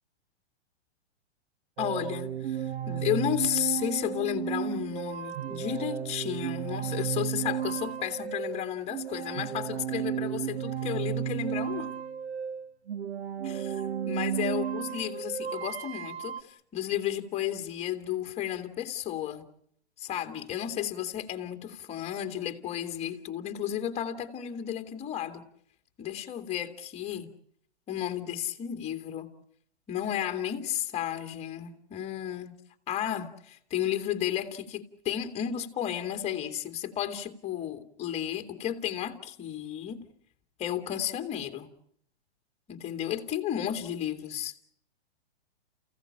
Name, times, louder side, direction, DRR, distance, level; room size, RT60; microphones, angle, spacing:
voice 1, 1.8-11.9 13.4-13.8 14.1-19.4 20.0-25.4 26.0-27.3 27.9-29.3 29.9-32.6 32.9-40.0 40.6-41.7 42.7-44.6, left 10 dB, 20° left, 2.3 m, -33 dB
sound 1, 1.8-16.4, right 9 dB, 70° right, 1.2 m, -33 dB
30.0 x 16.5 x 8.8 m
hypercardioid pair, 140°, 33 cm